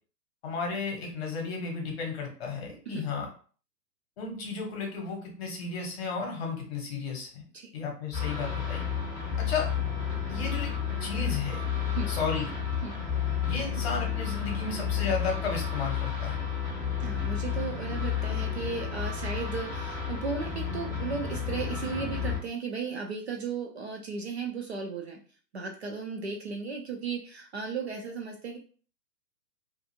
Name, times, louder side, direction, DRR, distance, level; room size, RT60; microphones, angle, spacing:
voice 1, 0.4-3.3 4.2-7.4 7.7-8.8 9.4-9.7 10.3-10.7 11.0-11.6 12.1-12.5 13.4-16.4, left 4 dB, 40° left, 1 dB, 0.9 m, -33 dB
sound 1, 8.1-22.4, left 7 dB, 5° left, 0.7 m, -31 dB
voice 2, 17.0-25.2 25.5-28.6, right 5 dB, 45° right, 1 dB, 0.4 m, -35 dB
2.5 x 2.4 x 2.6 m, 0.41 s
figure-of-eight pair, 125°, 50 cm